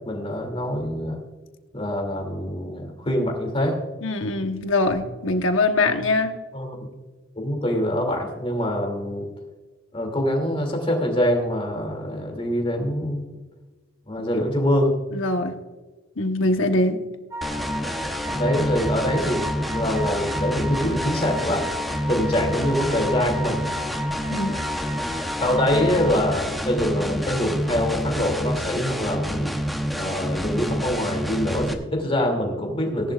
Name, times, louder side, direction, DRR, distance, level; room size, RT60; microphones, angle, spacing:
voice 1, 0.1-1.2 1.7-3.8 6.5-6.9 7.4-9.3 9.9-13.3 14.1-14.9 18.3-21.6 22.1-23.7 25.4-29.5 29.9-33.1, left 1 dB, 30° left, 2 dB, 2.6 m, -24 dB
voice 2, 4.0-6.3 14.3-14.4 15.1-15.6 16.2-17.0 24.3-24.6, left 2 dB, 75° left, 6 dB, 1.2 m, -22 dB
sound 1, 17.3-26.2, left 1 dB, 15° right, 3.2 m, -33 dB
sound 2, 17.4-31.7, equal, ahead, 0.9 m, -28 dB
18.5 x 11.0 x 2.5 m, 1.3 s
head